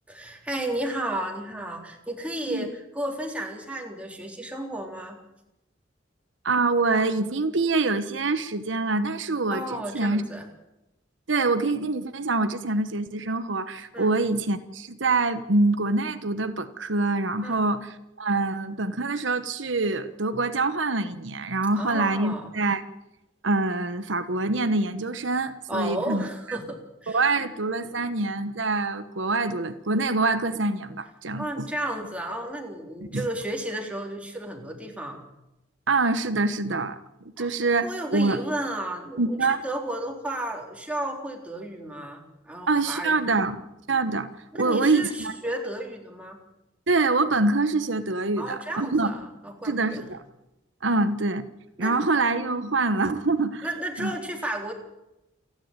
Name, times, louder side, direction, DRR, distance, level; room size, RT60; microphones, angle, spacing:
voice 1, 0.1-5.2 9.5-10.5 13.9-14.2 17.4-17.7 21.7-22.5 25.7-27.5 31.4-35.2 37.4-37.5 37.8-43.4 44.5-46.4 48.4-50.1 51.8-52.0 53.6-54.7, right 1 dB, 5° right, 1 dB, 3.8 m, -33 dB
voice 2, 6.4-10.2 11.3-22.8 23.4-26.6 27.1-31.7 33.1-33.2 35.9-37.0 37.4-38.4 39.2-39.6 42.7-43.6 43.9-44.3 44.6-45.3 46.9-49.2 49.6-50.2 50.8-51.4 51.8-53.7 54.0-54.2, right 3 dB, 80° right, 10 dB, 1.2 m, -25 dB
28.5 x 11.0 x 9.1 m, 0.92 s
head